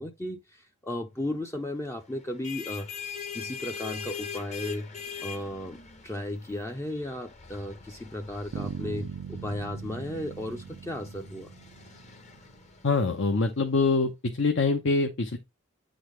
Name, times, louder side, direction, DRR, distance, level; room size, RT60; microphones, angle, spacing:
voice 1, 0.0-2.9 3.3-4.9 5.2-11.5, left 1 dB, 15° left, 0.5 m, -35 dB
sound 1, 2.2-13.5, left 7 dB, 35° left, 0.9 m, -42 dB
Bass guitar, 8.5-12.5, right 7 dB, 65° right, 0.3 m, -40 dB
voice 2, 12.8-14.1 14.4-15.4, left 4 dB, 65° left, 0.8 m, -24 dB
8.8 x 4.0 x 3.2 m
head